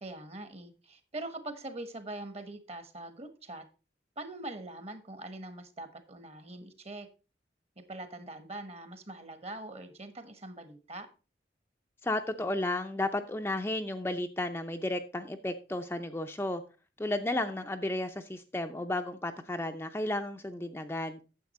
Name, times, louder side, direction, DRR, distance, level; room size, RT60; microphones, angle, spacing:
voice 1, 0.0-3.6 4.2-7.1 7.9-11.1, right 2 dB, 35° right, 1.2 m, -43 dB
voice 2, 12.0-16.6 17.0-21.2, left 1 dB, 15° left, 0.5 m, -33 dB
9.4 x 7.4 x 4.1 m
head